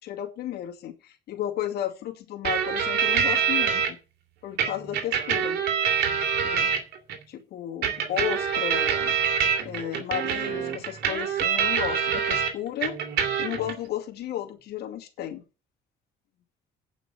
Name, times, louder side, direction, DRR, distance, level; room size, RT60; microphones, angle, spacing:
voice 1, 0.0-4.0 4.4-5.6 6.4-6.7 7.3-9.2 9.6-13.0 13.4-15.4, left 11 dB, 70° left, 3 dB, 2.3 m, -33 dB
sound 1, 2.4-3.9 4.6-7.2 7.8-12.5 12.8-13.7, right 7 dB, 75° right, 2.7 m, -25 dB
9.2 x 5.8 x 7.8 m, 0.32 s
cardioid pair, 110°, 17 cm